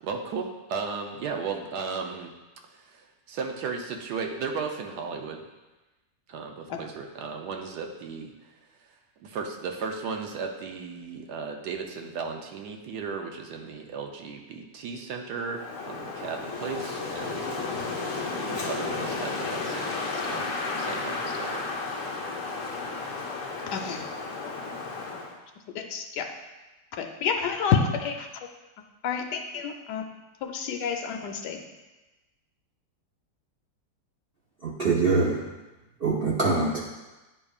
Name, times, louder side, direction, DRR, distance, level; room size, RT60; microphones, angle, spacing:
voice 1, 0.0-2.3 2.7-5.4 6.3-8.3 9.2-17.8 18.3-20.0 20.2-21.6, right 5 dB, 70° right, 3 dB, 1.2 m, -35 dB
Wind, 15.5-25.4, left 3 dB, 55° left, 1.1 m, -33 dB
voice 2, 23.7-24.0 24.4-24.5 25.1-25.2 25.7-26.3 27.0-28.3 29.0-30.0 30.4-31.6, left 6 dB, 75° left, 4 dB, 1.2 m, -29 dB
voice 3, 34.6-35.4 36.0-36.8, right 3 dB, 50° right, -5 dB, 0.7 m, -24 dB
9.8 x 5.0 x 2.4 m, 1.1 s
omnidirectional pair, 1.9 m